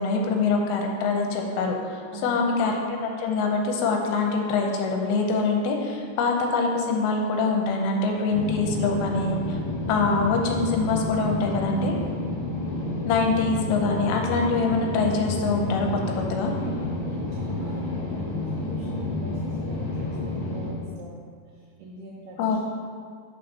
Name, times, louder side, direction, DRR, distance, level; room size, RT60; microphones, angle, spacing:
voice 1, 0.0-9.6 9.9-12.0 13.0-15.9 16.3-16.5 22.4-22.6, left 4 dB, 80° left, 2 dB, 2.7 m, -24 dB
voice 2, 2.1-2.5 16.5-22.7, right 4 dB, 85° right, -3 dB, 2.3 m, -42 dB
sound 1, 8.3-20.7, left 2 dB, 55° left, 2.4 m, -30 dB
6.6 x 4.3 x 5.3 m, 2.1 s
omnidirectional pair, 5.2 m